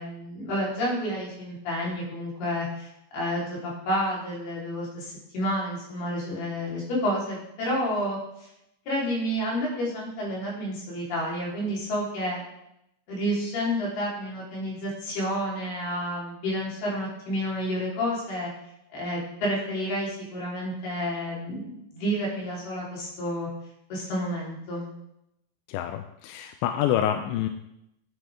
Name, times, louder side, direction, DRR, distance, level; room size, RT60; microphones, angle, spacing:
voice 1, 0.0-8.2 8.9-12.4 13.1-18.5 18.9-23.5 23.9-24.9, equal, 60° left, -4 dB, 5.7 m, -30 dB
voice 2, 25.7-27.5, left 10 dB, 85° left, 7 dB, 2.8 m, -27 dB
16.5 x 9.4 x 3.6 m, 0.81 s
omnidirectional pair, 5.3 m